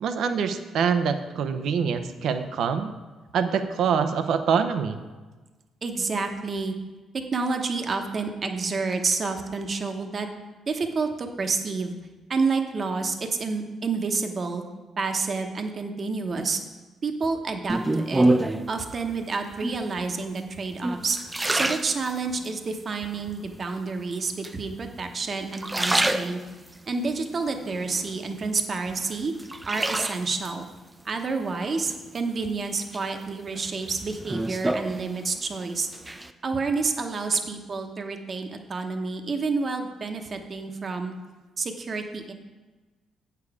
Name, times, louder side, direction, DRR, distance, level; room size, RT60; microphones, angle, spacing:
voice 1, 0.0-2.9 3.3-5.0, right 6 dB, 70° right, 9 dB, 0.6 m, -25 dB
voice 2, 5.8-6.7 7.3-10.3 10.7-11.9 12.3-14.6 15.0-16.6 17.0-18.3 18.7-21.2 21.5-26.4 26.9-29.3 29.6-30.7 31.0-35.9 36.4-41.1 41.6-42.3, right 4 dB, 40° right, 5 dB, 0.9 m, -29 dB
sound 1, 17.7-18.8 19.5-20.0 20.6-22.5 23.0-23.6 24.4-25.1 25.4-26.8 27.3-28.5 28.9-30.5 31.9-32.5 32.9-35.5 35.8-36.3, right 1 dB, 15° right, 0.5 m, -27 dB
8.3 x 6.9 x 4.8 m, 1.2 s
cardioid pair, 90°, 0 cm